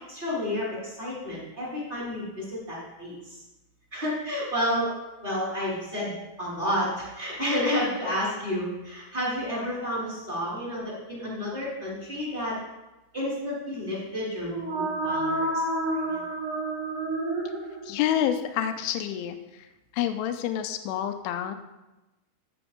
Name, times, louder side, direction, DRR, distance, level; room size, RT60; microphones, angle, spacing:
voice 1, 0.1-3.4 3.9-4.9 5.2-6.1 6.4-12.5 13.1-16.2, left 1 dB, 10° right, -8 dB, 4.1 m, -31 dB
sound 1, 14.4-18.2, right 2 dB, 70° right, 1.3 m, -29 dB
voice 2, 17.8-19.7 19.9-21.6, left 10 dB, 85° left, 8 dB, 3.1 m, -28 dB
14.0 x 6.1 x 5.2 m, 1.0 s
omnidirectional pair, 5.6 m